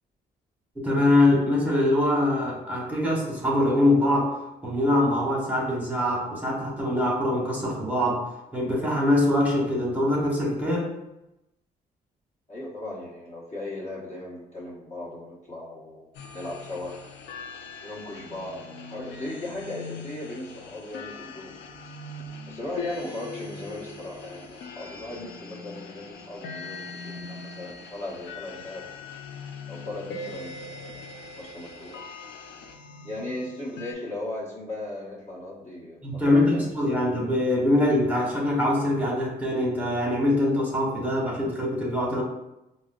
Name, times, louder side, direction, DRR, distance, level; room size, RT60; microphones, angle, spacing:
voice 1, 0.8-8.2 8.5-10.9 36.0-42.2, left 1 dB, 10° right, -4 dB, 1.1 m, -23 dB
voice 2, 12.5-16.9 17.8-21.5 22.5-28.9 29.7-32.0 33.0-37.1, left 2 dB, 40° left, -4 dB, 1.1 m, -37 dB
sound 1, 16.1-33.9, left 3 dB, 80° left, 0.4 m, -41 dB
4.7 x 2.0 x 2.4 m, 0.90 s
cardioid pair, 75°, 18 cm